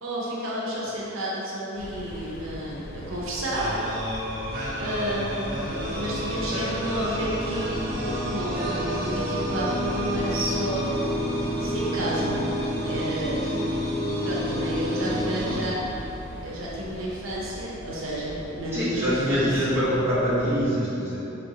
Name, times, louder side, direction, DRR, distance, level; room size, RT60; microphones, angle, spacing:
voice 1, 0.0-3.8 4.8-10.9 11.6-12.4 12.9-13.5 14.2-16.0 16.4-19.8, equal, 80° right, -6 dB, 0.8 m, -31 dB
sound 1, 1.8-20.6, left 1 dB, 50° left, 0.4 m, -40 dB
sound 2, 3.5-16.4, equal, 50° right, 1.0 m, -29 dB
voice 2, 18.7-21.2, equal, 10° right, -11 dB, 1.0 m, -24 dB
4.4 x 3.7 x 2.8 m, 3.0 s
head